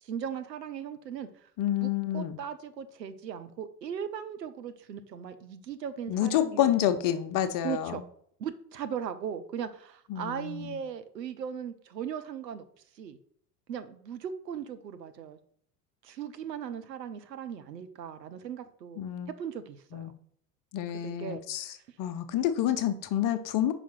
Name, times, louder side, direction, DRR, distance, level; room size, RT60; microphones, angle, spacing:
voice 1, 0.0-1.5 1.8-6.7 7.6-8.0 8.4-12.7 13.0-13.2 13.7-15.4 16.0-19.0 19.4-20.1 21.0-21.8, right 8 dB, 85° right, 10 dB, 0.8 m, -38 dB
voice 2, 1.6-2.4 6.1-8.0 10.1-10.8 19.0-19.3 19.9-20.1 20.7-21.7 22.0-23.7, left 11 dB, 40° left, 9 dB, 0.8 m, -28 dB
5.0 x 4.9 x 5.7 m, 0.64 s
hypercardioid pair, 80°, 48 cm